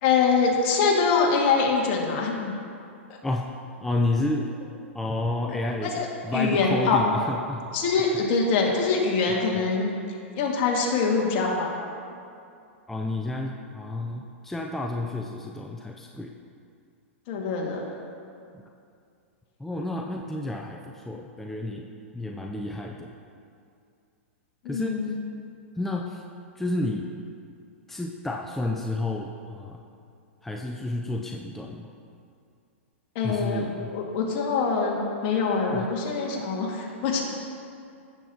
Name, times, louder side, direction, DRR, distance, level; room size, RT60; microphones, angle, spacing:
voice 1, 0.0-2.6 3.1-3.2 5.5-5.6 5.8-6.1 6.3-7.0 7.7-9.9 10.4-11.7 17.3-17.9 24.6-25.2 33.2-33.6 33.9-37.2, left 4 dB, 50° left, -1 dB, 1.9 m, -24 dB
voice 2, 3.2-4.5 4.9-7.8 12.9-16.3 19.6-23.1 24.7-25.1 25.8-26.2 26.6-27.1 27.9-29.8 30.4-31.9 33.2-34.0 35.7-35.9, left 2 dB, 5° left, 1 dB, 0.5 m, -31 dB
15.5 x 7.2 x 2.9 m, 2.5 s
hypercardioid pair, 125°, 7 cm